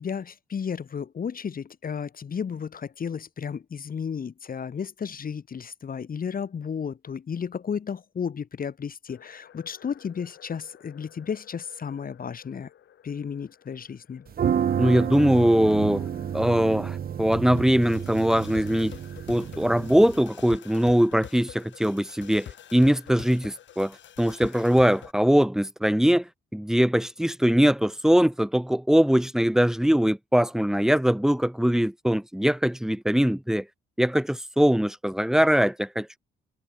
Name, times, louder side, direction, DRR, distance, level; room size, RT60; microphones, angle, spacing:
voice 1, 0.0-12.7 13.0-14.2, left 7 dB, 45° left, 4.0 m, -33 dB
sound 1, 9.1-25.1, left 10 dB, 65° left, 5.7 m, -48 dB
sound 2, 14.3-20.2, right 8 dB, 50° right, 1.1 m, -30 dB
voice 2, 14.8-16.1 16.3-18.9 19.3-33.6 34.0-36.2, equal, 5° right, 3.1 m, -22 dB
cardioid pair, 90°, 20 cm